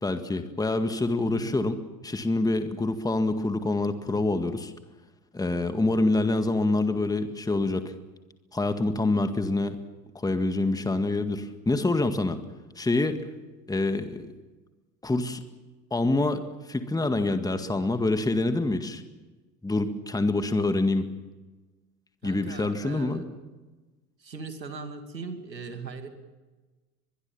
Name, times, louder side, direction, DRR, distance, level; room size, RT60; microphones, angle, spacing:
voice 1, 0.0-1.7 2.0-4.7 5.3-7.9 8.5-9.8 10.2-12.4 12.8-13.2 13.7-14.3 15.0-15.4 15.9-16.4 16.7-19.0 19.6-21.1 22.2-23.2, left 2 dB, 5° left, 9 dB, 1.9 m, -26 dB
voice 2, 1.2-1.6 22.2-23.3 24.2-26.1, right 4 dB, 90° right, 8 dB, 2.5 m, -39 dB
23.5 x 22.0 x 7.2 m, 1.2 s
figure-of-eight pair, 80°, 49 cm